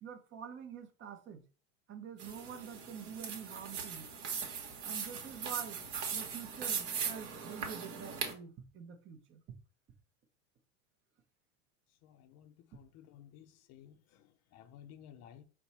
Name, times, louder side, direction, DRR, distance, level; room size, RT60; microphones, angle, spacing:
voice 1, 0.0-1.4 1.9-4.1 4.8-5.8 6.1-9.6, right 8 dB, 35° right, 0.8 m, -47 dB
sound 1, 2.2-8.3, right 6 dB, 55° right, 1.2 m, -39 dB
voice 2, 12.0-15.4, left 9 dB, 45° left, 0.5 m, -56 dB
4.4 x 2.2 x 4.1 m
supercardioid pair, 105°, 36 cm